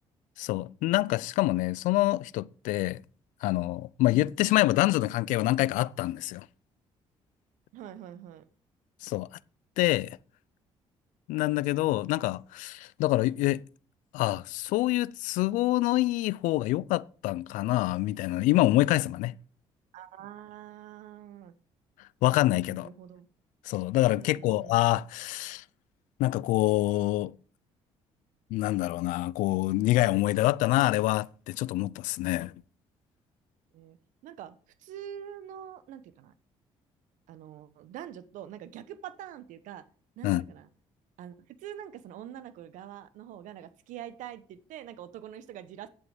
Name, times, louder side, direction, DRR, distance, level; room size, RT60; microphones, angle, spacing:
voice 1, 0.4-3.0 3.4-6.5 9.0-9.3 9.8-10.2 11.3-13.6 14.1-19.3 22.2-22.9 23.7-25.6 26.2-27.3 28.5-32.5 40.2-40.4, left 17 dB, 80° left, 0.5 m, -26 dB
voice 2, 7.7-8.4 19.9-21.5 22.7-23.3 24.2-24.8 33.7-34.0 34.2-36.3 37.3-39.8 40.2-40.7 41.2-45.9, right 10 dB, 75° right, 0.9 m, -45 dB
11.0 x 7.9 x 5.0 m
supercardioid pair, 60°, 13 cm